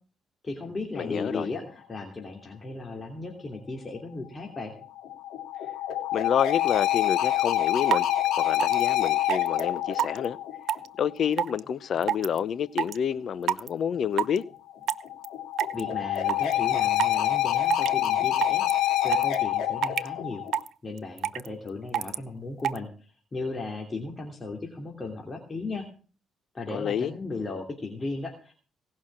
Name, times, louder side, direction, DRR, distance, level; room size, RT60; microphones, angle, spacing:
voice 1, 0.4-4.7 15.7-20.4 20.8-25.8 26.5-28.5, left 3 dB, 30° left, 2.8 m, -36 dB
voice 2, 0.9-1.5 6.1-8.1 8.4-10.4 11.0-14.5 26.7-27.1, left 8 dB, 60° left, 0.8 m, -28 dB
sound 1, 4.7-11.1 14.7-20.6, left 13 dB, 85° left, 2.7 m, -26 dB
sound 2, 7.4-7.5 7.9-8.0 8.5-8.8 9.3-9.6 10.0-10.3 10.7-10.9 11.4-11.6 12.0-12.4 12.8-13.0 13.5-13.7 14.2-14.4 14.9-15.3 15.6-15.8 16.2-16.5 17.0-17.2 17.7-18.1 18.4-18.7 19.1-19.3 19.8-20.1 20.5-20.7 21.0-21.5 21.9-22.2 22.6-22.8, right 10 dB, 75° right, 0.6 m, -26 dB
18.0 x 6.3 x 7.5 m
cardioid pair, 90°, 0 cm